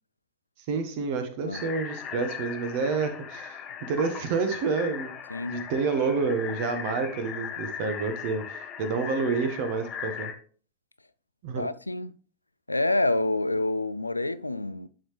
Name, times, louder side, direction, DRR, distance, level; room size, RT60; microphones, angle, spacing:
voice 1, 0.7-5.1 5.5-10.3 11.4-11.7, right 4 dB, 50° right, 1.3 m, -29 dB
sound 1, 1.5-10.3, left 8 dB, 30° left, 1.0 m, -38 dB
voice 2, 5.3-5.7 11.5-12.1 12.7-14.9, left 2 dB, 85° left, 0.3 m, -27 dB
11.0 x 4.9 x 3.2 m
figure-of-eight pair, 90°, 0 cm